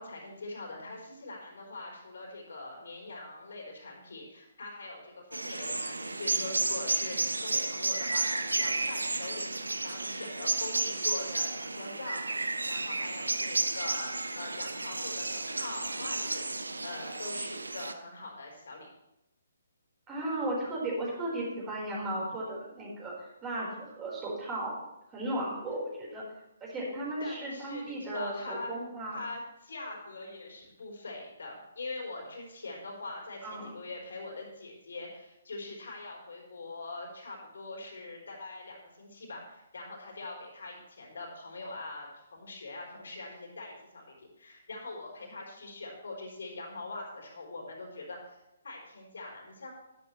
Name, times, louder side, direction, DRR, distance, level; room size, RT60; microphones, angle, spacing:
voice 1, 0.0-9.5 9.8-12.3 12.7-16.5 16.8-18.9 27.2-28.8 29.1-49.7, left 2 dB, 65° left, -1 dB, 4.0 m, -43 dB
sound 1, 5.3-17.9, right 2 dB, 80° right, 0.7 m, -32 dB
voice 2, 20.1-24.8 25.1-26.2 26.6-29.2 33.4-33.8, right 1 dB, 20° right, -5 dB, 4.7 m, -35 dB
12.0 x 11.5 x 3.2 m, 0.89 s
figure-of-eight pair, 135°, 0 cm